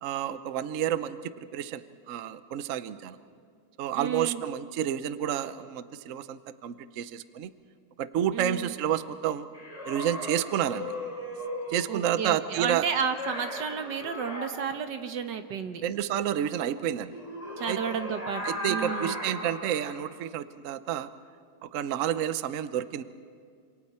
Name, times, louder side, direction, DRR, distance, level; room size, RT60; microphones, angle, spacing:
voice 1, 0.0-3.2 3.8-7.5 8.0-9.5 9.9-10.9 11.7-12.9 15.8-17.1 17.7-17.8 18.4-21.1 21.6-23.0, right 10 dB, 60° right, 13 dB, 1.0 m, -30 dB
voice 2, 4.0-4.4 8.3-8.7 11.9-15.8 17.6-19.2, right 7 dB, 90° right, 7 dB, 1.8 m, -32 dB
sound 1, 9.5-12.0 13.0-14.5 17.1-20.0, equal, 20° left, 4.7 m, -36 dB
27.0 x 27.0 x 4.3 m, 2.2 s
omnidirectional pair, 1.8 m